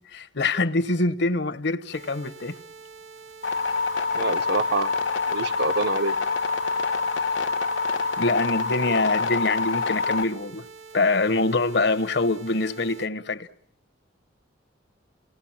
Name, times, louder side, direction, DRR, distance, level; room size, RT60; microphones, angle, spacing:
voice 1, 0.1-2.6 8.2-10.6 10.9-13.5, left 3 dB, 60° left, 1.0 m, -24 dB
sound 1, 1.9-13.1, right 5 dB, 85° right, 2.0 m, -46 dB
sound 2, 3.4-10.2, left 4 dB, 80° left, 1.2 m, -26 dB
voice 2, 4.1-5.0 5.3-6.1, right 3 dB, 60° right, 0.9 m, -26 dB
29.0 x 18.5 x 8.7 m
head